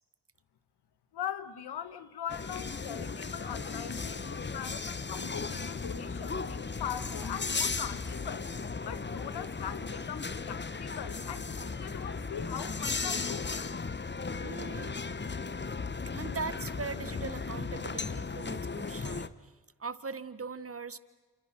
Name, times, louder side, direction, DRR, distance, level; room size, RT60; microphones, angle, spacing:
voice 1, 1.1-8.5 8.8-13.5, left 9 dB, 80° left, 1.5 m, -41 dB
sound 1, 2.3-19.3, left 4 dB, 25° left, 1.2 m, -36 dB
voice 2, 14.4-15.0 16.1-19.5 19.8-21.0, right 4 dB, 35° right, 1.5 m, -40 dB
29.5 x 28.5 x 6.1 m
cardioid pair, 60°, 39 cm